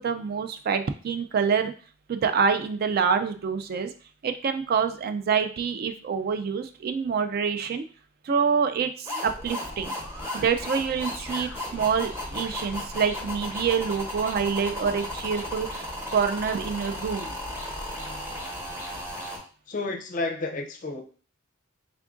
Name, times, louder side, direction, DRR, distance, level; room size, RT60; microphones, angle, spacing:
voice 1, 0.0-1.7 2.1-3.9 4.2-7.8 8.2-9.9 10.3-17.3, right 6 dB, 45° right, 8 dB, 0.3 m, -26 dB
sound 1, 9.1-19.4, left 1 dB, 10° right, 1.1 m, -35 dB
voice 2, 19.7-21.0, left 3 dB, 40° left, 3 dB, 0.5 m, -31 dB
3.4 x 2.4 x 3.7 m, 0.40 s
head